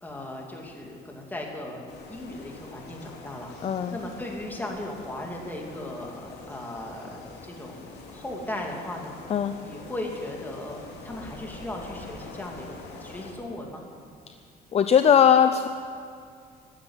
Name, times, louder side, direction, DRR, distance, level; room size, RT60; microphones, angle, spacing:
voice 1, 0.0-1.8 2.1-3.5 3.9-9.1 9.6-12.7 13.0-13.9, left 1 dB, 10° left, 0 dB, 2.6 m, -37 dB
sound 1, 1.9-13.3, left 3 dB, 75° left, 2.8 m, -45 dB
voice 2, 3.6-3.9 9.3-9.5 14.7-15.7, left 8 dB, 35° left, 9 dB, 0.6 m, -19 dB
15.0 x 9.6 x 9.9 m, 2.2 s
cardioid pair, 130°, 17 cm